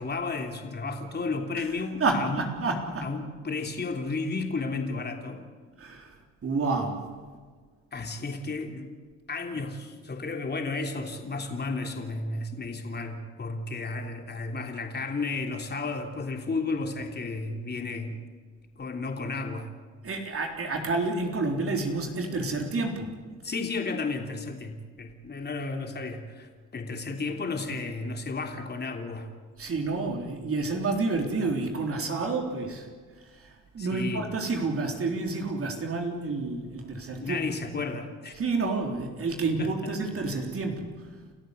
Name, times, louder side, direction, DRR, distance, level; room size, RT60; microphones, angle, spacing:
voice 1, 0.0-2.4 3.0-5.4 7.9-8.9 9.3-18.2 18.8-19.7 23.4-29.3 33.8-34.3 37.2-38.3 39.6-39.9, left 3 dB, 35° left, 4 dB, 3.3 m, -33 dB
voice 2, 2.0-3.1 5.8-6.2 6.4-7.0 20.0-23.1 29.6-32.9 33.3-37.7 38.4-41.1, right 3 dB, 45° right, 2 dB, 3.7 m, -29 dB
29.5 x 14.0 x 8.2 m, 1.5 s
cardioid pair, 90°, 30 cm